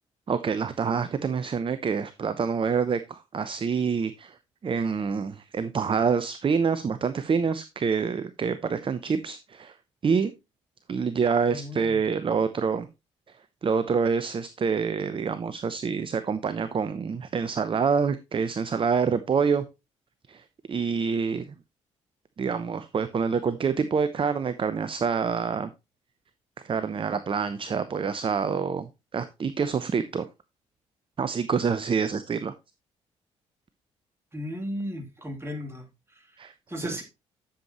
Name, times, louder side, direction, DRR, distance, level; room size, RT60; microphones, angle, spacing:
voice 1, 0.3-4.4 4.6-9.8 10.0-10.3 10.9-12.9 13.6-19.6 20.3-21.6 22.4-25.7 26.6-30.3 31.2-32.5 36.4-37.0, right 5 dB, 35° right, 0.8 m, -27 dB
voice 2, 11.5-12.0 34.3-35.8 36.2-36.3 36.7-37.0, equal, 15° right, 2.9 m, -35 dB
11.5 x 7.2 x 3.0 m
figure-of-eight pair, 40°, 16 cm